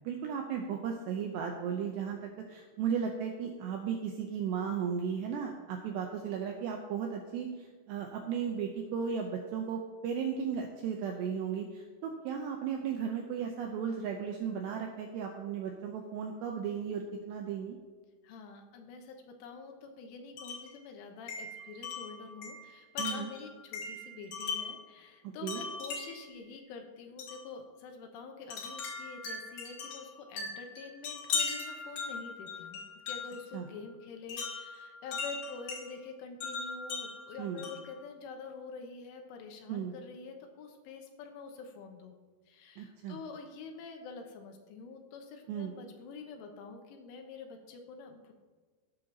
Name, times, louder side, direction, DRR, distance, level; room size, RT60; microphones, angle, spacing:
voice 1, 0.0-17.8 23.0-23.3 25.2-25.6 33.5-33.7 37.4-37.6 39.7-39.9 42.8-43.2 45.5-45.7, right 7 dB, 80° right, 2 dB, 2.5 m, -35 dB
voice 2, 18.2-42.1 42.5-48.3, left 4 dB, 75° left, 4 dB, 3.4 m, -47 dB
Wind chime, 20.4-20.7 21.3-24.9 25.5-26.3 27.2-27.4 28.5-33.4 34.3-35.8 36.4-37.9, left 4 dB, 55° left, 3.9 m, -39 dB
16.5 x 10.5 x 2.9 m, 1.4 s
omnidirectional pair, 5.9 m